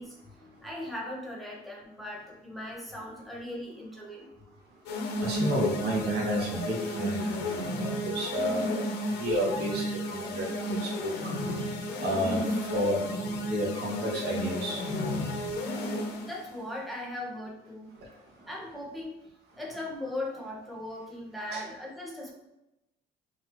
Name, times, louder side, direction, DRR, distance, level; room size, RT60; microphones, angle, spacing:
voice 1, 0.0-4.3 15.4-15.5 16.2-17.9 18.5-19.2 19.6-22.3, left 1 dB, ahead, -3 dB, 0.9 m, -39 dB
sound 1, 4.9-16.4, left 1 dB, 80° left, 0.6 m, -32 dB
voice 2, 5.2-8.8 9.2-11.1 12.0-12.4 12.7-13.0 13.5-14.8 21.5-21.6, right 1 dB, 75° right, -1 dB, 1.1 m, -31 dB
4.1 x 2.4 x 2.9 m, 0.93 s
cardioid pair, 110°, 17 cm